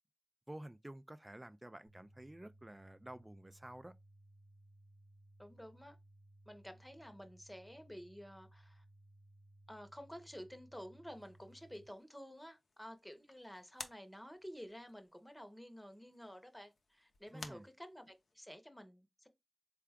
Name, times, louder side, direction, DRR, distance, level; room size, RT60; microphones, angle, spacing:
voice 1, 0.5-3.9 17.3-17.7, right 1 dB, 20° right, 0.3 m, -51 dB
sound 1, 1.9-11.9, right 1 dB, 50° left, 1.0 m, -63 dB
voice 2, 5.4-6.0 6.5-8.8 9.7-19.3, equal, 5° left, 0.8 m, -52 dB
sound 2, 11.1-18.4, left 3 dB, 75° left, 0.6 m, -57 dB
3.6 x 2.3 x 3.4 m
cardioid pair, 45°, 0 cm